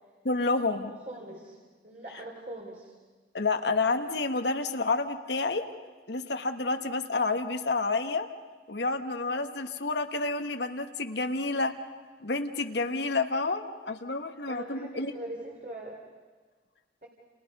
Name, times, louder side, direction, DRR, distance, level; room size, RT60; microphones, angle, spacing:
voice 1, 0.2-0.9 3.3-5.6 6.1-8.3 8.7-11.7 12.2-15.1, left 3 dB, 70° left, 6 dB, 1.4 m, -29 dB
voice 2, 1.1-1.6 1.8-3.0 14.5-16.0 17.0-17.1, right 1 dB, 45° right, -1 dB, 3.2 m, -42 dB
30.0 x 30.0 x 5.4 m, 1.4 s
head